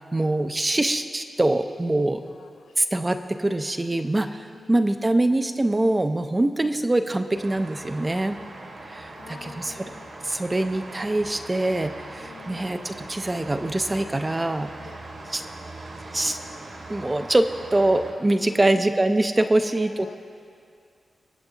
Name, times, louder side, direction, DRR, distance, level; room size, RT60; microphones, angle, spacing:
voice 1, 0.1-2.2 2.8-8.4 8.9-9.9 10.2-14.7 15.3-15.4 16.1-16.4 16.9-20.2, right 2 dB, 20° right, 8 dB, 0.4 m, -24 dB
voice 2, 2.3-2.8 4.5-4.7 9.2-10.1 12.2-12.8 14.8-15.3 18.5-18.9 19.6-20.2, left 6 dB, 85° left, 8 dB, 0.5 m, -47 dB
sound 1, 7.3-18.1, right 2 dB, 60° right, 1.4 m, -41 dB
23.0 x 7.9 x 2.8 m, 2.4 s
wide cardioid pair, 115°, 0 cm